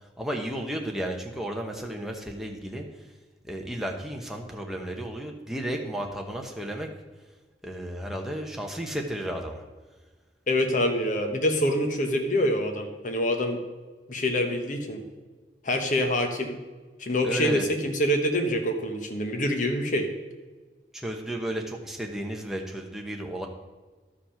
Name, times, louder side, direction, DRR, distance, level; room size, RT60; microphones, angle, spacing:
voice 1, 0.2-2.8 3.5-6.9 7.6-9.6 17.2-17.7 20.9-23.5, right 1 dB, ahead, 1 dB, 1.1 m, -33 dB
voice 2, 10.5-13.6 14.1-15.0 15.6-16.6 17.0-20.1, left 1 dB, 45° left, 5 dB, 1.2 m, -26 dB
12.0 x 5.2 x 5.8 m, 1.3 s
head